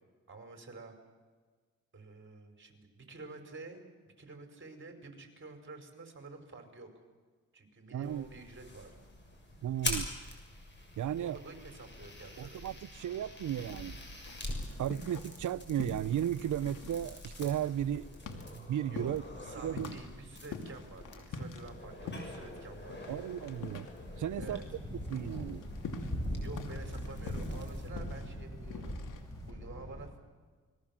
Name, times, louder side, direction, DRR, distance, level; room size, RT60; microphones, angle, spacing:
voice 1, 0.3-0.9 1.9-6.9 7.5-9.0 11.1-12.6 18.9-19.1 19.4-23.0 24.4-24.6 25.8-25.9 26.4-29.0 29.5-30.1, right 3 dB, 40° right, 5.6 m, -49 dB
voice 2, 7.9-8.3 9.6-10.1 11.0-11.4 12.4-14.0 14.8-18.1 18.5-19.2 19.6-19.9 23.1-23.9 24.2-24.6 25.1-25.7, right 11 dB, 75° right, 0.7 m, -35 dB
sound 1, 8.0-27.9, left 2 dB, 35° left, 7.1 m, -45 dB
sound 2, 14.2-15.5 15.8-24.8 25.0-29.5, left 4 dB, 90° left, 2.7 m, -45 dB
Thunder, 24.0-30.1, equal, 10° left, 5.1 m, -40 dB
27.5 x 21.5 x 7.5 m
cardioid pair, 85°, 30 cm